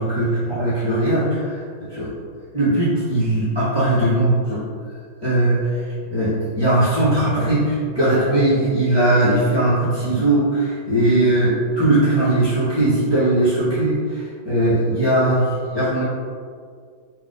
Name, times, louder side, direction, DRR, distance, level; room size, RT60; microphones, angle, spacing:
voice 1, 0.0-2.1 2.5-4.6 5.2-5.6 6.1-16.0, right 1 dB, 15° left, -12 dB, 1.1 m, -19 dB
4.0 x 2.9 x 3.7 m, 2.1 s
omnidirectional pair, 2.2 m